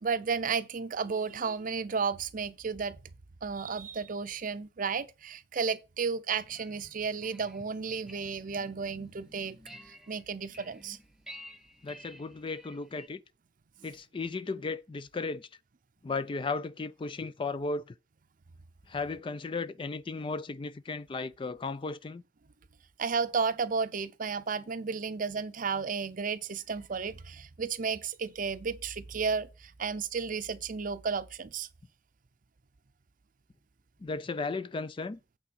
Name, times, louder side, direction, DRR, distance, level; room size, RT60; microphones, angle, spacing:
voice 1, 0.0-3.0 3.4-9.6 9.9-11.0 23.0-31.7, right 5 dB, 50° right, 0.6 m, -33 dB
sound 1, 6.3-13.1, equal, ahead, 0.8 m, -52 dB
voice 2, 11.8-13.2 13.8-15.5 16.0-17.8 18.9-22.2 34.0-35.2, left 3 dB, 30° left, 0.4 m, -35 dB
8.5 x 3.8 x 6.8 m
head